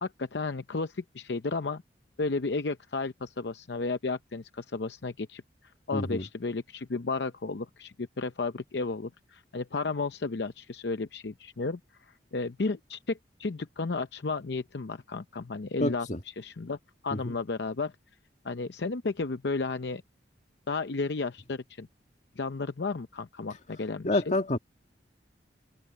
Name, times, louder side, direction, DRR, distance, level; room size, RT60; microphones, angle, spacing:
voice 1, 0.0-1.8 2.2-5.4 5.9-11.8 12.1-16.1 16.4-16.8 17.0-17.9 18.4-20.0 20.7-21.9 22.4-24.4, left 3 dB, 65° left, 0.7 m, -33 dB
voice 2, 5.9-6.3 15.8-16.2 17.2-17.3 24.0-24.6, left 2 dB, 40° left, 1.9 m, -28 dB
open air
head